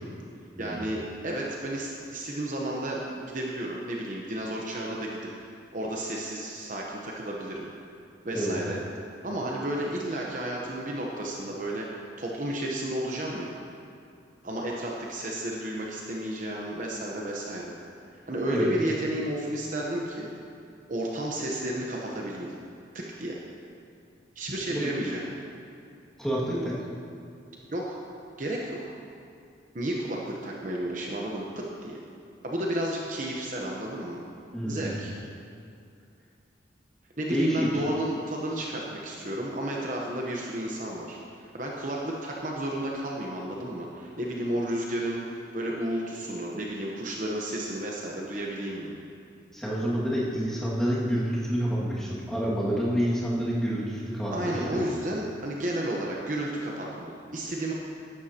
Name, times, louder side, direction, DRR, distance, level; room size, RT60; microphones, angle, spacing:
voice 1, 0.6-5.2 5.7-7.7 8.2-8.8 9.2-13.5 14.4-17.7 18.1-20.3 20.9-22.5 22.9-23.4 24.4-25.2 27.7-28.0 28.4-28.8 29.7-32.0 32.4-34.2 34.7-35.1 37.2-49.1 54.3-57.7, right 1 dB, 40° right, -2 dB, 1.0 m, -32 dB
voice 2, 26.2-26.8 34.5-35.0 37.3-37.7 49.5-55.0, equal, 5° left, -8 dB, 2.1 m, -28 dB
14.5 x 11.0 x 2.9 m, 2.4 s
head